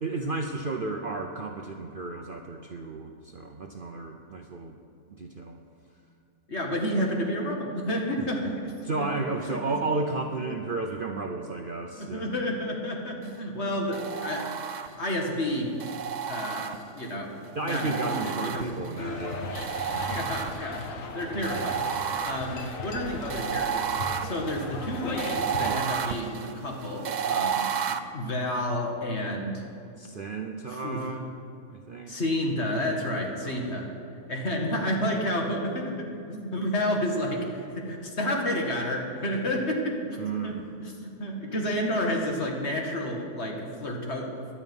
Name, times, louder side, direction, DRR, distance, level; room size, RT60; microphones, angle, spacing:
voice 1, 0.0-4.8 5.1-5.6 8.2-8.3 8.8-12.3 17.5-19.6 25.6-25.9 30.0-31.3 31.7-32.1 33.4-33.7 40.2-40.6, right 3 dB, 45° right, 3 dB, 0.8 m, -33 dB
voice 2, 6.5-9.1 9.5-9.7 12.0-15.8 16.3-18.9 19.9-20.8 21.1-23.9 24.2-29.6 30.7-31.1 32.1-33.9 34.3-44.5, equal, 45° left, 0 dB, 2.2 m, -30 dB
sound 1, 13.9-15.2 15.8-17.1 17.7-19.0 19.5-20.9 21.4-28.0, right 7 dB, 70° right, 0.4 m, -32 dB
sound 2, 19.0-25.7, left 3 dB, 60° left, 1.5 m, -37 dB
17.5 x 11.0 x 5.4 m, 2.6 s
omnidirectional pair, 1.6 m